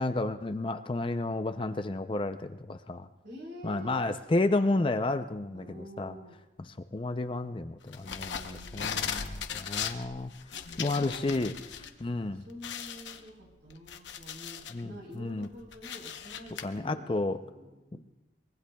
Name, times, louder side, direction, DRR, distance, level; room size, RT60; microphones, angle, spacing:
voice 1, 0.0-3.1 3.6-6.2 6.6-10.3 10.8-11.5 12.0-12.5 14.7-15.5 16.6-17.4, left 2 dB, 30° left, 9 dB, 0.4 m, -31 dB
voice 2, 3.2-4.0 5.5-6.4 8.2-9.0 10.9-18.0, equal, 65° right, 1 dB, 3.8 m, -48 dB
sound 1, 7.9-11.9 12.2-12.3 12.6-14.8 15.3-16.6, left 7 dB, 80° left, 0.9 m, -38 dB
24.0 x 21.5 x 2.3 m, 1.0 s
head